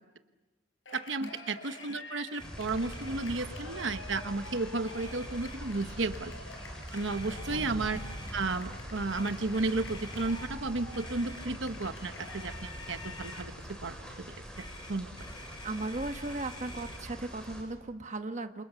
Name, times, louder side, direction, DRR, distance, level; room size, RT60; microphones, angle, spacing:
Cheering, 0.9-13.5, left 2 dB, 80° left, 5.6 m, -49 dB
voice 1, 0.9-6.4 6.9-8.0 8.3-13.5 13.8-14.0 14.6-15.1, right 3 dB, 75° right, 9 dB, 1.1 m, -33 dB
Motor vehicle (road), 1.6-2.0 2.3-2.5 2.8-3.4 4.2-4.5 4.8-5.8 6.9-8.3 9.1-10.5 10.9-11.5 12.2-13.5 14.5-17.0, left 1 dB, 25° left, 1.8 m, -50 dB
sound 1, 2.4-17.6, equal, 5° left, 7.7 m, -43 dB
voice 2, 15.6-18.6, right 2 dB, 40° right, 7 dB, 1.2 m, -37 dB
29.0 x 27.0 x 6.9 m, 1.2 s
head